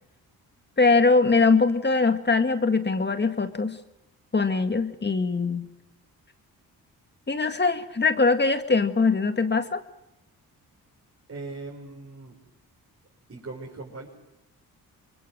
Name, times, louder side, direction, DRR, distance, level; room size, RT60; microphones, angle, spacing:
voice 1, 0.8-3.8 4.3-5.7 7.3-9.8, left 4 dB, 30° left, 8 dB, 1.9 m, -22 dB
voice 2, 11.3-12.4 13.3-14.1, right 3 dB, 40° right, -3 dB, 6.2 m, -39 dB
25.5 x 23.0 x 7.7 m, 0.86 s
cardioid pair, 70°, 37 cm